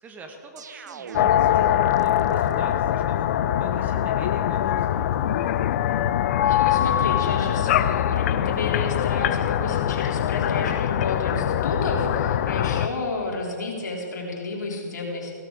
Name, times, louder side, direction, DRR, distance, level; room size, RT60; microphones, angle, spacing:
voice 1, 0.0-3.3 3.6-4.9, right 3 dB, 15° right, 4 dB, 1.2 m, -44 dB
sound 1, 0.6-2.8, right 7 dB, 70° right, 0.6 m, -41 dB
sound 2, 1.1-12.9, left 11 dB, 45° left, 0.5 m, -23 dB
voice 2, 6.4-15.3, left 3 dB, 70° left, -1 dB, 3.4 m, -31 dB
16.5 x 13.0 x 3.8 m, 2.4 s
hypercardioid pair, 130°, 10 cm